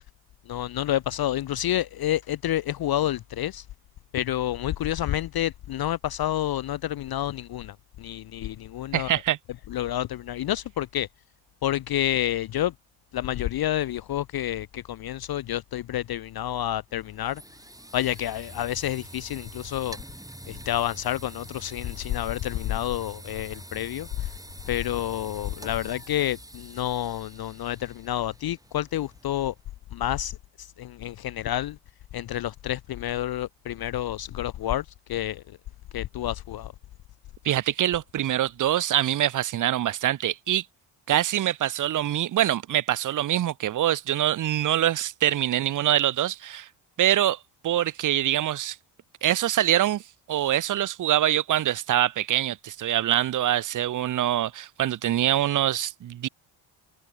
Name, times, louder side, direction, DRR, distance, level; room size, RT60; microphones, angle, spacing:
voice 1, 0.5-3.6 4.1-9.2 9.7-11.1 11.6-12.7 13.1-17.4 17.9-20.0 20.5-24.3 24.7-29.5 29.9-31.8 32.1-35.4 35.9-36.7, left 12 dB, 50° left, 0.6 m, -29 dB
voice 2, 8.9-9.4 37.4-40.6 41.1-46.7 47.0-47.4 47.6-48.8 49.2-50.0 50.3-56.3, right 12 dB, 40° right, 0.6 m, -24 dB
sound 1, 16.9-29.7, right 1 dB, 5° right, 5.6 m, -46 dB
cardioid pair, 75°, 49 cm